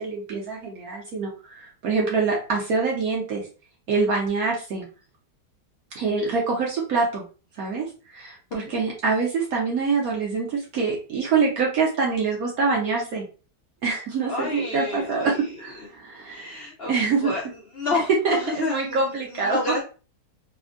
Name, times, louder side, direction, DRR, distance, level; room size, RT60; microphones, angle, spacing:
voice 1, 0.0-3.4 3.9-4.9 6.0-7.2 7.6-13.2 13.8-16.6 16.9-17.3 18.2-19.6, right 4 dB, 65° right, -2 dB, 1.1 m, -25 dB
voice 2, 14.3-15.5 16.3-17.5 17.7-19.8, left 3 dB, 70° left, -4 dB, 0.5 m, -30 dB
3.4 x 2.1 x 2.4 m, 0.35 s
omnidirectional pair, 1.8 m